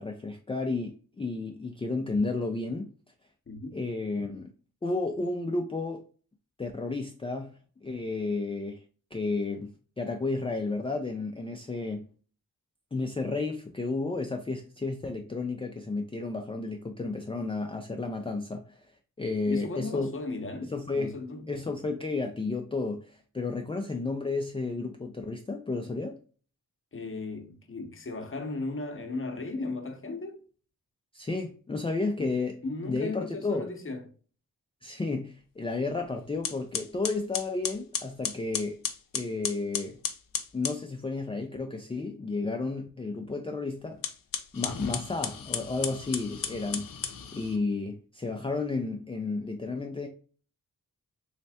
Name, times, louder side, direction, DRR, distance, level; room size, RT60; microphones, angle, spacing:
voice 1, 0.0-2.9 3.7-4.5 4.8-6.0 6.6-8.8 9.1-9.7 10.0-12.1 12.9-18.8 19.2-20.1 20.6-21.1 21.5-26.2 31.1-33.7 34.8-38.8 39.1-40.0 40.5-44.0 44.5-47.0 47.3-50.1, left 3 dB, 15° left, 0.4 m, -32 dB
voice 2, 19.5-21.5 26.9-30.4 32.2-32.3 32.6-34.1, left 3 dB, 35° left, 0.8 m, -36 dB
sound 1, 35.9-36.0 36.4-40.8 43.9-47.6, left 7 dB, 65° left, 0.6 m, -35 dB
3.2 x 3.2 x 2.7 m
cardioid pair, 75°, 36 cm